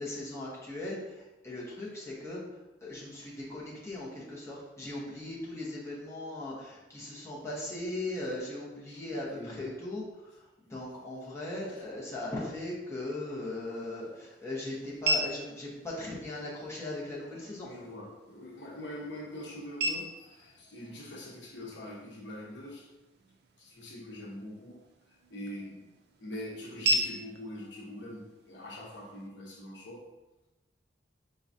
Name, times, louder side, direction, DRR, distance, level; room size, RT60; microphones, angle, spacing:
voice 1, 0.0-2.4 2.8-10.1 10.6-17.7, left 1 dB, 15° left, -7 dB, 1.1 m, -38 dB
voice 2, 9.3-9.7 11.7-11.8 17.6-22.9 23.6-24.8 25.3-25.8 26.2-30.0, left 1 dB, 70° left, -3 dB, 1.0 m, -43 dB
sound 1, 13.3-29.3, right 1 dB, 60° right, 0.5 m, -38 dB
4.7 x 3.8 x 2.7 m, 1.1 s
head